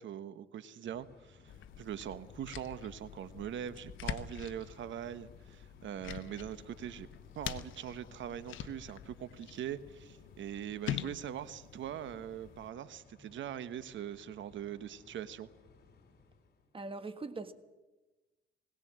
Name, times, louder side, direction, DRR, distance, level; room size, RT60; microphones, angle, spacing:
voice 1, 0.0-1.4 1.8-7.1 7.3-15.5, right 10 dB, 70° right, 1.2 m, -42 dB
sound 1, 0.8-16.8, left 4 dB, 50° left, 3.9 m, -61 dB
sound 2, 1.5-12.7, left 10 dB, 75° left, 1.0 m, -45 dB
voice 2, 16.7-17.5, right 3 dB, 25° right, 1.6 m, -41 dB
20.5 x 18.0 x 7.5 m
cardioid pair, 90°, 20 cm